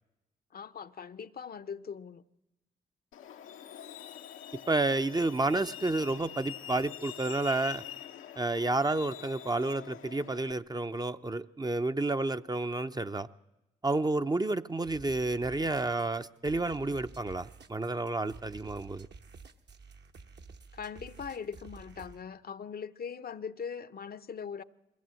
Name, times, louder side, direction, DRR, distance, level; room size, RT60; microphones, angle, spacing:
voice 1, 0.5-2.2 20.7-24.6, left 6 dB, 45° left, 0.7 m, -41 dB
Truck, 3.1-10.5, left 10 dB, 80° left, 0.9 m, -45 dB
voice 2, 4.7-7.8 8.4-13.3 13.8-19.1, right 2 dB, 20° right, 0.6 m, -30 dB
sound 1, 14.8-22.2, right 4 dB, 55° right, 1.2 m, -51 dB
21.5 x 15.5 x 7.7 m
hypercardioid pair, 45°, 21 cm